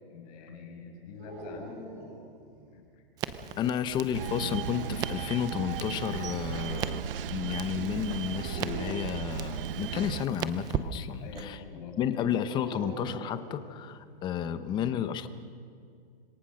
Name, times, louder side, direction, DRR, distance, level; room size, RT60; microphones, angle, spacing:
voice 1, 0.1-1.8 2.7-2.8 11.2-12.0, left 5 dB, 40° left, 2 dB, 5.9 m, -45 dB
sound 1, 1.2-2.8 4.4-5.5 8.4-9.2 12.4-14.1, equal, 35° right, 7.9 m, -44 dB
Crackle, 3.2-11.5, right 10 dB, 15° right, 0.5 m, -40 dB
voice 2, 3.6-11.6 12.0-15.3, left 9 dB, 15° left, 11 dB, 0.9 m, -32 dB
sound 2, 4.1-10.3, right 8 dB, 65° right, 1.1 m, -36 dB
26.5 x 23.0 x 6.4 m, 2.3 s
hypercardioid pair, 155°, 30 cm